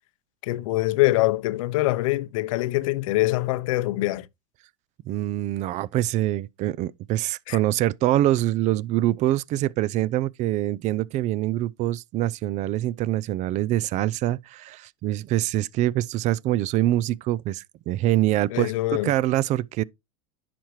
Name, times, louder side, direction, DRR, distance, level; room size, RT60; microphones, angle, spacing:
voice 1, 0.4-4.3 7.5-7.6 18.5-19.2, left 18 dB, 80° left, 0.6 m, -24 dB
voice 2, 5.1-18.7 19.0-19.8, right 14 dB, 45° right, 0.4 m, -24 dB
10.0 x 5.9 x 3.1 m
supercardioid pair, 120°, 17 cm